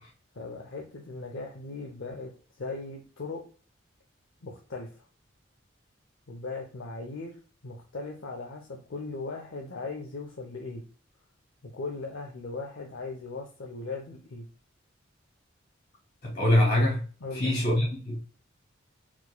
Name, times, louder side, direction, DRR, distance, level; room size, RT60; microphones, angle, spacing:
voice 1, 0.3-2.3 2.6-3.4 4.4-5.0 6.3-7.4 7.6-10.8 11.6-14.5 17.2-17.6, left 3 dB, 75° left, 0.7 m, -38 dB
voice 2, 16.2-17.0 17.3-18.2, left 1 dB, 50° left, 2.3 m, -24 dB
4.4 x 4.3 x 2.2 m
head